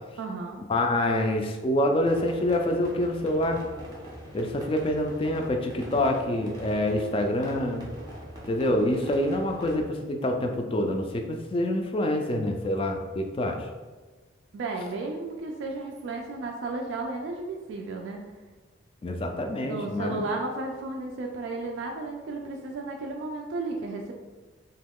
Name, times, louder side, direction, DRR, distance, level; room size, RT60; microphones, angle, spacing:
voice 1, 0.2-0.6 14.5-18.2 19.6-24.1, right 3 dB, 70° right, 1 dB, 0.3 m, -33 dB
voice 2, 0.7-3.6 4.3-7.9 8.5-13.7 19.0-20.3, left 1 dB, 30° left, 4 dB, 0.3 m, -26 dB
sound 1, 2.0-9.8, right 1 dB, 20° right, 0.6 m, -43 dB
3.0 x 2.3 x 3.5 m, 1.3 s
head